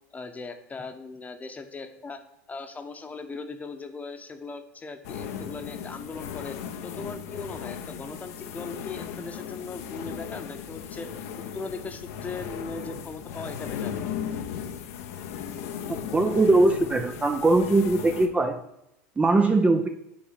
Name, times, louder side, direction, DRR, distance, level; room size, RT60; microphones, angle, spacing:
voice 1, 0.1-2.2 2.5-6.6 6.8-11.1 11.5-13.9, left 3 dB, 20° left, 7 dB, 1.0 m, -39 dB
sound 1, 5.0-18.3, left 8 dB, 70° left, 0.9 m, -36 dB
voice 2, 15.9-18.6 19.2-19.9, right 2 dB, 15° right, 6 dB, 0.7 m, -21 dB
8.7 x 4.5 x 5.9 m, 0.84 s
hypercardioid pair, 90°, 8 cm